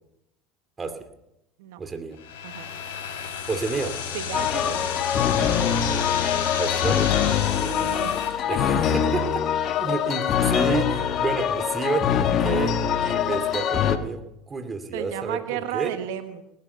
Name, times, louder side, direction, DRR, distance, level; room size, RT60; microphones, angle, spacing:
voice 1, 1.8-2.2 3.5-3.9 6.6-7.1 8.5-9.4 9.8-15.9, right 4 dB, 25° right, 7 dB, 2.4 m, -30 dB
sound 1, 2.2-8.3, left 7 dB, 75° left, 5.8 m, -31 dB
voice 2, 4.1-5.1 5.4-5.6 7.6-8.4 14.9-16.4, right 11 dB, 80° right, 9 dB, 1.1 m, -34 dB
sound 2, 4.3-14.0, left 8 dB, 50° left, 1.3 m, -24 dB
19.0 x 12.5 x 5.6 m, 0.86 s
supercardioid pair, 95°, 0 cm